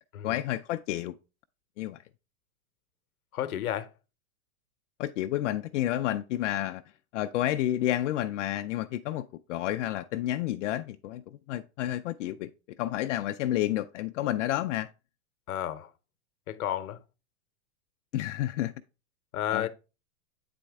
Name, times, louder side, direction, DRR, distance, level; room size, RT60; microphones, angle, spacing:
voice 1, 0.2-1.2 1.8-2.0 5.0-6.8 7.1-12.5 12.8-14.9 18.1-18.7 19.5-19.7, left 13 dB, 60° left, 0.5 m, -30 dB
voice 2, 3.3-3.9 15.5-15.9 16.5-17.0 19.3-19.7, left 11 dB, 85° left, 0.9 m, -31 dB
9.0 x 4.2 x 3.4 m
hypercardioid pair, 140°, 42 cm